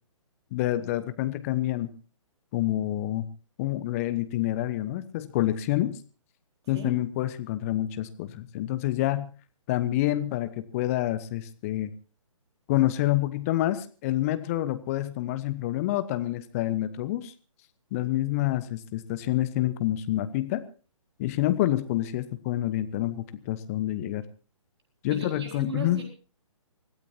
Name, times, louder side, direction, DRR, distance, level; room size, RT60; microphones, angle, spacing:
voice 1, 0.5-1.9 2.5-3.3 3.6-6.0 6.7-9.3 9.7-11.9 12.7-17.3 17.9-20.6 21.2-24.2 25.0-26.0, left 14 dB, 25° left, 13 dB, 1.0 m, -27 dB
voice 2, 25.1-26.0, right 3 dB, 50° right, 2 dB, 4.3 m, -37 dB
25.0 x 16.5 x 2.8 m, 0.37 s
figure-of-eight pair, 130°, 18 cm